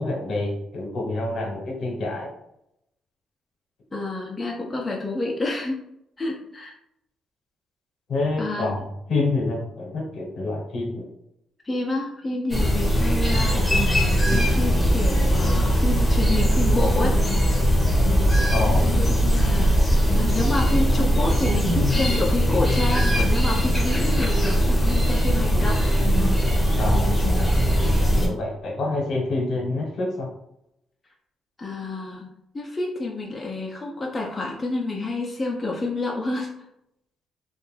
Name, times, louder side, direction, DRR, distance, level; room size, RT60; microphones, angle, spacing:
voice 1, 0.0-2.3 8.1-8.8 9.1-11.1 18.5-18.9 26.8-27.4 28.2-30.3, left 2 dB, 65° left, -1 dB, 0.9 m, -27 dB
voice 2, 3.9-5.8 6.2-6.7 8.4-8.7 11.6-14.0 14.3-17.2 18.8-25.8 26.8-26.9 31.6-32.3 32.5-36.5, left 2 dB, 25° left, -1 dB, 0.4 m, -29 dB
sound 1, 12.5-28.3, equal, 5° left, 0.8 m, -20 dB
2.5 x 2.2 x 3.1 m, 0.80 s
cardioid pair, 90°, 0 cm